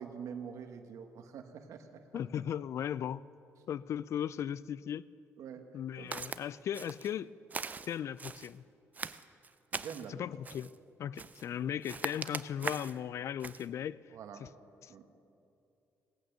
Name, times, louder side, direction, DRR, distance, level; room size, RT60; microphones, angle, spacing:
voice 1, 0.0-2.0 5.4-5.7 6.0-6.3 9.7-10.2 14.1-14.5 14.9-15.1, right 7 dB, 75° right, 7 dB, 1.2 m, -45 dB
voice 2, 2.1-3.2 3.7-5.1 5.7-7.3 7.9-8.6 10.2-10.7 11.0-14.5 14.8-14.9, left 9 dB, 60° left, 20 dB, 0.3 m, -37 dB
Walk footsteps, 6.1-6.4 6.7-7.1 7.5-8.5 8.9-10.1 10.4-10.7 11.2-11.5 11.8-13.0 13.4-13.7, right 5 dB, 30° right, 0.4 m, -41 dB
17.5 x 8.6 x 6.6 m, 2.7 s
cardioid pair, 95°, 6 cm